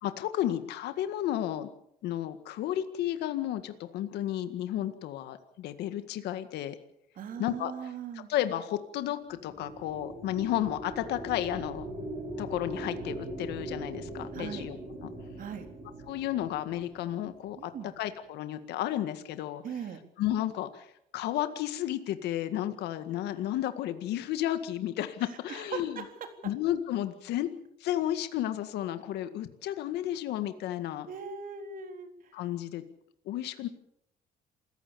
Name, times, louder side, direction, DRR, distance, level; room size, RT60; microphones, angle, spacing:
voice 1, 0.0-1.7 2.0-6.8 7.4-7.7 8.3-11.9 12.4-14.8 15.0-15.1 16.1-17.7 18.0-19.6 20.2-26.0 26.4-27.5 27.8-31.1 32.3-32.8 33.3-33.7, left 12 dB, 80° left, 9 dB, 1.9 m, -32 dB
voice 2, 7.2-8.3 14.3-14.7 15.4-15.7 17.6-17.9 19.6-20.0 25.2-26.1 31.1-32.3, right 7 dB, 55° right, 6 dB, 3.9 m, -40 dB
sound 1, 9.3-17.8, right 1 dB, 35° right, 6.8 m, -41 dB
28.0 x 15.5 x 7.1 m, 0.75 s
cardioid pair, 110°, 17 cm